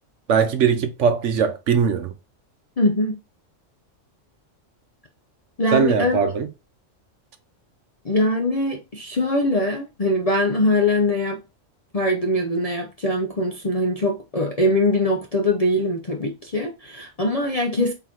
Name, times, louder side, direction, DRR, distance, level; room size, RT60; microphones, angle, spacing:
voice 1, 0.3-2.1 5.7-6.5, right 6 dB, 70° right, 1.0 m, -20 dB
voice 2, 2.8-3.2 5.6-6.2 8.0-11.4 11.9-17.9, left 1 dB, 40° left, 0.6 m, -22 dB
3.9 x 3.8 x 2.9 m
omnidirectional pair, 1.3 m